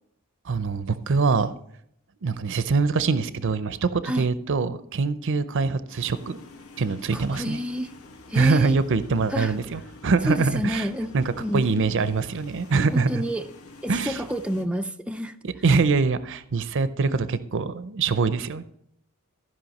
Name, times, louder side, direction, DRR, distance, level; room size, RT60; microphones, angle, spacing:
voice 1, 0.5-1.5 2.2-6.4 6.8-7.6 8.3-10.9 11.1-13.2 13.9-14.2 15.4-18.7, right 4 dB, 60° right, 13 dB, 0.5 m, -24 dB
sound 1, 5.9-14.6, left 3 dB, 70° left, 1.1 m, -47 dB
voice 2, 7.1-7.9 8.3-8.8 9.3-9.5 10.3-11.1 11.4-11.6 12.9-13.5 13.8-15.4, equal, 5° right, 6 dB, 0.4 m, -28 dB
14.5 x 5.4 x 5.3 m, 0.72 s
head